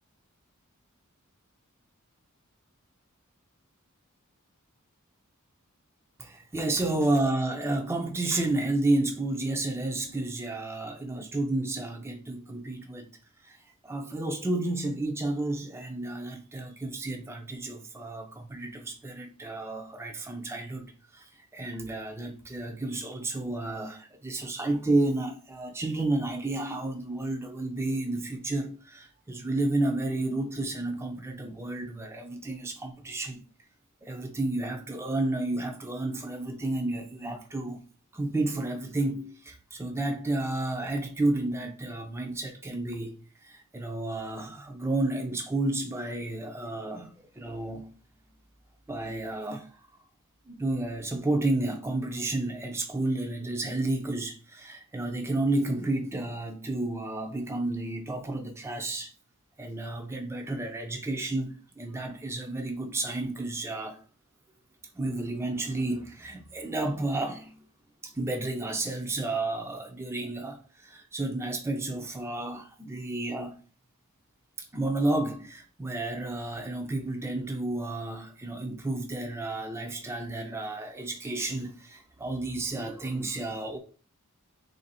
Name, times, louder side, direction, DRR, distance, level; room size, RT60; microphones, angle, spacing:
voice 1, 6.2-13.1 13.4-13.6 13.8-33.4 34.0-37.8 38.1-43.1 43.4-47.9 48.9-49.8 50.5-59.1 59.6-64.0 64.9-67.6 68.0-73.6 74.6-83.8, right 2 dB, 10° right, 0.4 m, -31 dB
3.3 x 2.6 x 4.0 m
head